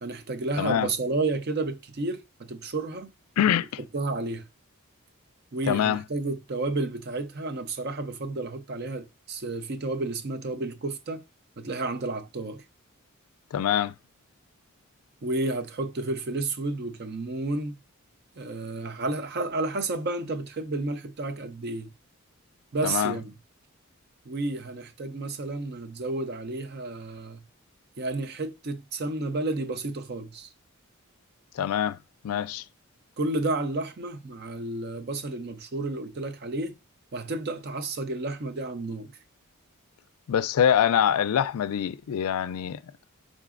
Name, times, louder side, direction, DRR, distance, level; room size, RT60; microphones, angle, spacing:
voice 1, 0.0-3.1 3.9-4.5 5.5-11.2 11.6-12.6 15.2-17.8 18.4-21.9 22.7-23.3 24.3-27.4 28.0-30.5 33.2-36.8 37.1-39.1, right 2 dB, 45° right, 0.5 m, -31 dB
voice 2, 0.6-0.9 3.4-3.7 5.7-6.0 13.5-13.9 22.8-23.2 31.6-32.0 32.2-32.6 40.3-42.8, left 9 dB, 85° left, 0.3 m, -24 dB
4.8 x 3.8 x 2.5 m
head